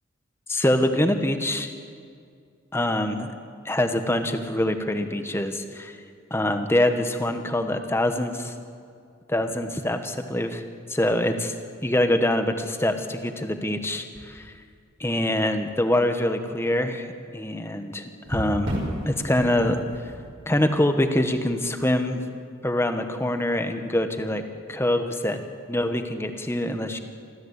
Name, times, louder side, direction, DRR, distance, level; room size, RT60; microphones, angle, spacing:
voice 1, 0.5-1.7 2.7-3.3 3.6-6.0 6.3-8.5 9.3-10.6 10.9-11.5 11.8-14.5 15.0-18.7 19.1-19.8 20.5-22.2 22.6-24.4 24.7-25.4 25.7-27.0, left 1 dB, 10° left, 7 dB, 1.3 m, -24 dB
sound 1, 9.2-9.5 11.0-11.2 11.8-11.9 14.1-15.0 15.5-15.7 18.2-21.8 25.7-25.9, equal, 60° right, 5.3 m, -34 dB
27.5 x 14.0 x 8.2 m, 2.2 s
head